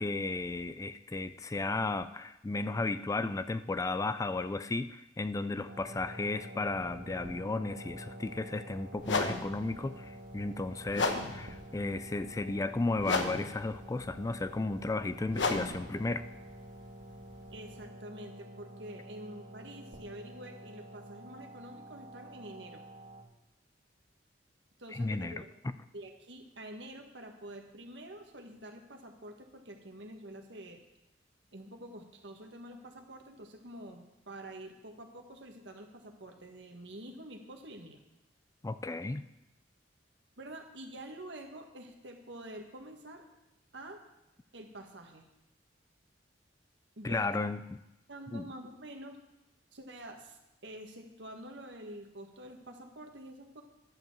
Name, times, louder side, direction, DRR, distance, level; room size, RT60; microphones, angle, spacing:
voice 1, 0.0-16.2 24.9-25.7 38.6-39.2 47.0-47.6 48.3-48.5, left 3 dB, 20° left, 13 dB, 0.3 m, -34 dB
sound 1, 5.7-23.2, right 1 dB, 55° right, 1.7 m, -49 dB
sound 2, 8.2-8.4 9.0-17.8, left 3 dB, 85° left, 1.1 m, -36 dB
voice 2, 17.5-22.8 24.8-25.5 25.9-30.8 31.5-38.0 40.4-43.2 43.7-44.0 44.5-45.3 47.0-47.5 48.1-49.2 49.7-53.6, right 1 dB, 75° right, 4 dB, 1.6 m, -47 dB
11.0 x 7.1 x 7.2 m, 0.93 s
head